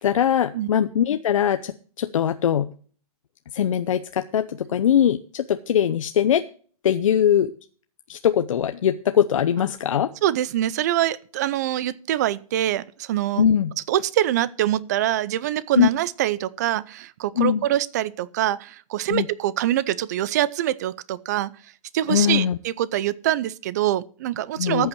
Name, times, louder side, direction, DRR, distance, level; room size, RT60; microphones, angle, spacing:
voice 1, 0.0-1.7 2.0-2.7 3.5-6.4 6.8-7.5 8.1-10.1 13.4-13.7 15.8-15.9 17.4-17.6 19.1-19.3 22.1-22.6 24.6-24.9, left 9 dB, 60° left, 0.7 m, -21 dB
voice 2, 10.2-13.4 13.9-21.5 21.9-24.9, right 13 dB, 30° right, 0.5 m, -24 dB
14.0 x 8.0 x 4.6 m
hypercardioid pair, 165°, 19 cm